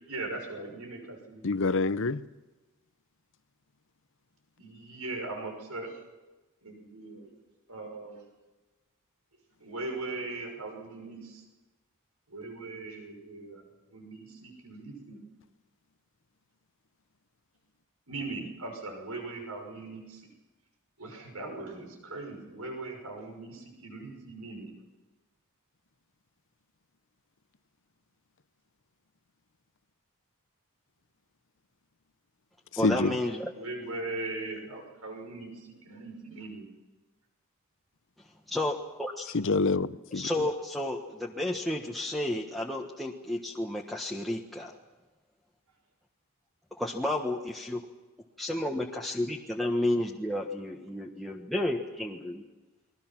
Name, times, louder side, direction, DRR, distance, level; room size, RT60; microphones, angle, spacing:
voice 1, 0.1-1.7 4.6-6.0 6.6-7.3 7.7-8.3 9.6-11.4 12.3-13.6 13.9-15.2 18.1-20.2 21.0-24.7 33.5-36.7, right 2 dB, 80° right, 6.1 m, -40 dB
voice 2, 1.4-2.2 32.8-33.1 39.3-40.3, left 3 dB, 60° left, 0.8 m, -26 dB
voice 3, 32.8-33.5 38.5-39.3 40.1-44.7 46.8-47.9 48.4-52.4, left 1 dB, ahead, 1.3 m, -31 dB
30.0 x 21.5 x 6.0 m
head